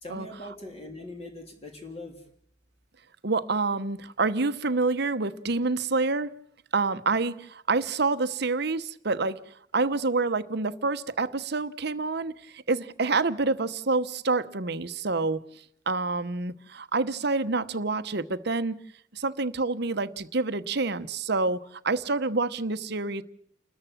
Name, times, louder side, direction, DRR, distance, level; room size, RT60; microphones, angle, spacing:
voice 1, 0.0-2.2, left 1 dB, 30° left, 3.4 m, -41 dB
voice 2, 3.2-6.3 6.7-9.4 9.7-15.4 15.9-18.8 19.1-23.2, right 3 dB, 55° right, 1.0 m, -27 dB
30.0 x 14.0 x 7.3 m
head